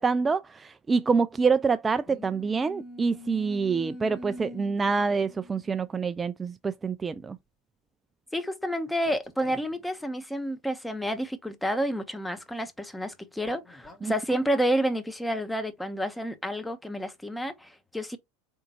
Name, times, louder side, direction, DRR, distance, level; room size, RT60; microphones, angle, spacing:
voice 1, 0.0-7.4 14.0-14.1, right 5 dB, 20° right, 0.3 m, -26 dB
sound 1, 2.1-6.0 6.9-7.1 9.0-9.9 13.4-14.5, left 1 dB, 20° left, 1.7 m, -45 dB
voice 2, 8.3-18.2, equal, 5° left, 0.9 m, -30 dB
4.4 x 3.6 x 2.9 m
hypercardioid pair, 90°, 0 cm